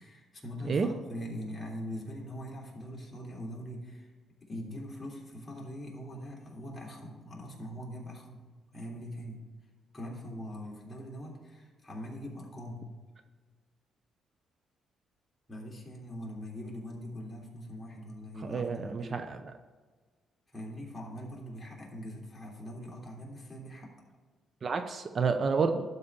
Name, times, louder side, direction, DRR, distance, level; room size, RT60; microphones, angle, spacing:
voice 1, 0.0-4.1 4.4-8.4 8.7-9.4 9.9-12.9 15.5-19.2 20.5-23.9, equal, 20° left, -4 dB, 3.2 m, -42 dB
voice 2, 18.4-19.4 24.6-25.8, right 5 dB, 45° right, 7 dB, 0.7 m, -29 dB
12.0 x 4.2 x 6.8 m, 1.4 s
cardioid pair, 90°, 0 cm